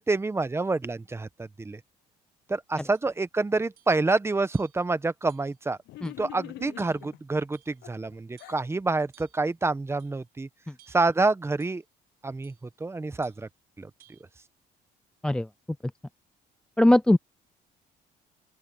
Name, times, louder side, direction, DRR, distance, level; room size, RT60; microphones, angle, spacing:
voice 1, 0.0-1.8 2.5-5.8 6.2-10.5 10.9-11.8 12.2-12.5 12.8-13.5 13.8-13.9, right 3 dB, 15° right, 0.9 m, -27 dB
sound 1, 2.9-3.1 3.8-4.0 4.5-4.9 5.3-5.6 6.0-6.2 6.8-7.1 7.5-7.9 8.4-8.7 9.1-9.5 10.0-10.2 10.8-11.2 11.6-11.9 12.4-12.7 13.2-13.5 14.0-14.2, right 13 dB, 70° right, 5.5 m, -60 dB
sound 2, 5.9-7.2 7.8-8.7, left 16 dB, 80° left, 0.7 m, -43 dB
voice 2, 16.8-17.2, left 1 dB, 5° left, 0.3 m, -19 dB
open air
cardioid pair, 110°, 17 cm